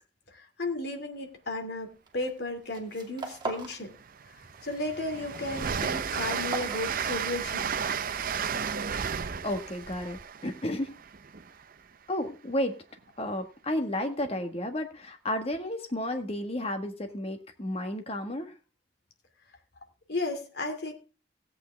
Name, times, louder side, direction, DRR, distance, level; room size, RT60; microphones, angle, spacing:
voice 1, 0.3-3.9 4.6-7.7 20.1-20.9, left 2 dB, 65° left, 5 dB, 2.4 m, -34 dB
sound 1, 2.1-2.4 2.6-3.8 4.1-4.8 5.1-7.6, right 3 dB, 25° right, 2.4 m, -40 dB
Train, 3.5-3.6 4.0-11.7, right 6 dB, 50° right, 0.6 m, -33 dB
voice 2, 8.9-10.9 12.1-12.8 13.2-18.5, left 1 dB, 35° left, 6 dB, 1.6 m, -32 dB
16.5 x 8.6 x 3.4 m, 0.33 s
head